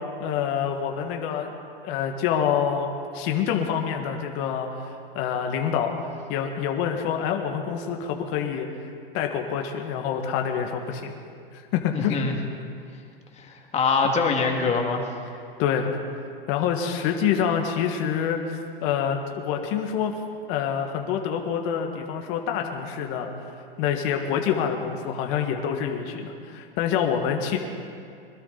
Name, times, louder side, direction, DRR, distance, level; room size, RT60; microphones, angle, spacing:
voice 1, 0.2-1.5 1.8-2.9 3.1-4.7 5.2-5.9 6.3-8.7 9.1-11.1 11.7-12.2 15.6-15.9 16.5-20.1 20.5-23.3 23.8-27.6, left 8 dB, 45° left, 3 dB, 1.7 m, -26 dB
voice 2, 11.9-12.3 13.4-15.1, left 4 dB, 20° left, 2 dB, 2.2 m, -24 dB
22.0 x 12.5 x 4.1 m, 2.4 s
hypercardioid pair, 115°, 29 cm